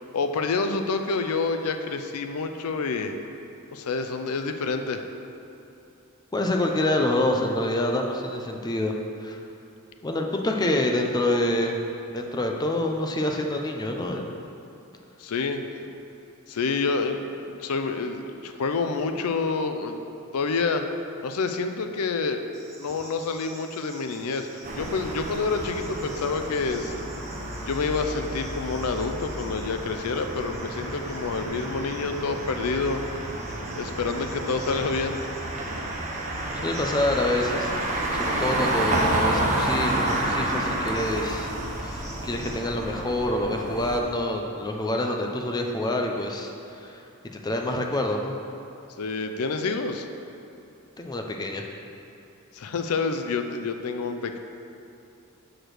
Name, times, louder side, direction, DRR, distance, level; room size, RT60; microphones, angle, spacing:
voice 1, 0.1-3.1 3.7-5.0 15.2-15.6 16.5-20.0 20.3-20.8 21.2-22.4 22.8-24.5 24.8-27.1 27.7-33.0 33.8-35.3 49.0-50.1 52.5-54.4, left 4 dB, 85° left, 7 dB, 0.5 m, -28 dB
voice 2, 6.3-9.4 10.0-11.7 12.1-14.3 36.6-41.5 41.8-47.0 47.3-48.3 51.0-51.6, left 1 dB, 20° left, 2 dB, 0.5 m, -27 dB
Cricket, 22.5-42.5, right 2 dB, 15° right, 1.1 m, -49 dB
sound 1, 24.6-44.0, right 1 dB, 35° right, 0.9 m, -30 dB
5.9 x 5.0 x 6.3 m, 2.8 s
head